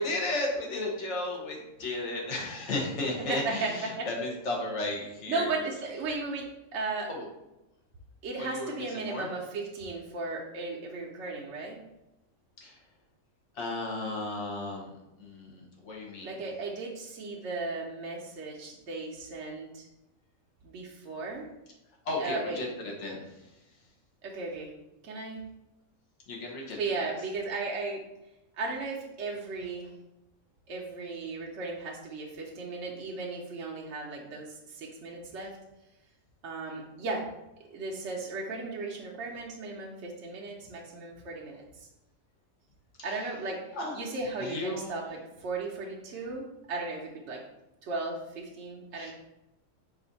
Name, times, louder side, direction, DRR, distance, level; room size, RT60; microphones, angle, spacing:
voice 1, 0.0-5.6 7.1-7.2 8.4-9.3 12.6-12.8 13.5-16.4 22.0-23.4 26.3-27.1 43.0-43.3 43.8-43.9 44.4-44.9 48.9-49.1, left 2 dB, 60° left, 0 dB, 1.3 m, -34 dB
voice 2, 3.2-4.1 5.3-7.1 8.2-11.8 16.2-19.9 20.6-21.4 22.2-22.6 24.2-24.7 25.0-25.4 26.8-28.0 28.6-29.9 30.7-35.5 36.4-37.2 37.7-41.6 43.0-43.6 43.9-47.4 47.9-49.1, right 3 dB, 65° right, -2 dB, 0.9 m, -36 dB
4.8 x 2.5 x 3.9 m, 0.93 s
omnidirectional pair, 1.4 m